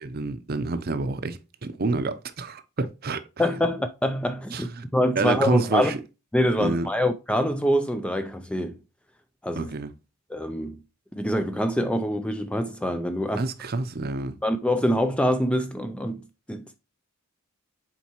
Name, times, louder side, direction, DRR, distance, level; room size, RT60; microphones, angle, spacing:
voice 1, 0.0-3.2 4.5-4.6 5.2-5.9 6.6-6.9 9.6-9.9 13.4-14.4, right 3 dB, 45° right, 0.6 m, -28 dB
voice 2, 3.4-5.9 6.3-8.8 9.4-9.7 10.3-10.8 11.1-13.5 14.4-16.8, equal, 5° left, 0.3 m, -25 dB
7.2 x 4.4 x 3.0 m
head